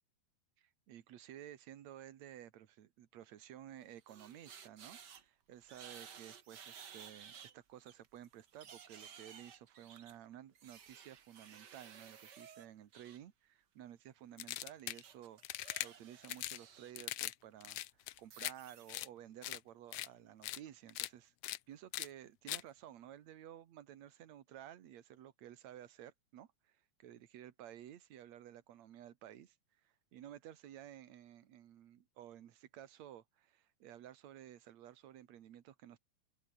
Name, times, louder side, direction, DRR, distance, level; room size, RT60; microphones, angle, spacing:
voice 1, 0.6-17.8 18.2-21.3 21.7-29.6 29.8-36.0, right 11 dB, 65° right, 2.7 m, -54 dB
sound 1, 3.7-5.2 5.6-7.5 7.9-13.2 14.9-16.9 17.3-17.5 18.2-18.9, right 7 dB, 45° right, 1.6 m, -56 dB
sound 2, 14.4-15.0 15.4-15.9 16.2-16.6 17.0-17.3 17.6-18.5 18.9-19.1 19.4-19.6 19.9-20.1 20.4-20.6 20.9-21.1 21.4-21.6 21.9-22.1 22.5-22.6, left 15 dB, 75° left, 1.6 m, -41 dB
omnidirectional pair, 3.6 m